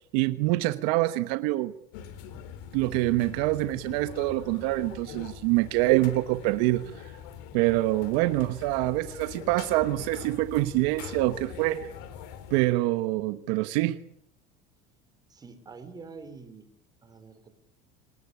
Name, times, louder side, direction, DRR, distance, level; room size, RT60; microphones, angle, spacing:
voice 1, 0.1-1.7 2.7-6.8 7.5-11.9 12.5-14.0, right 18 dB, 70° right, 12 dB, 1.2 m, -25 dB
sound 1, 1.9-12.6, left 8 dB, 70° left, 3.7 m, -43 dB
voice 2, 15.3-16.7 17.0-17.5, right 4 dB, 20° right, 9 dB, 4.3 m, -46 dB
26.5 x 19.5 x 9.9 m, 0.69 s
cardioid pair, 145°, 21 cm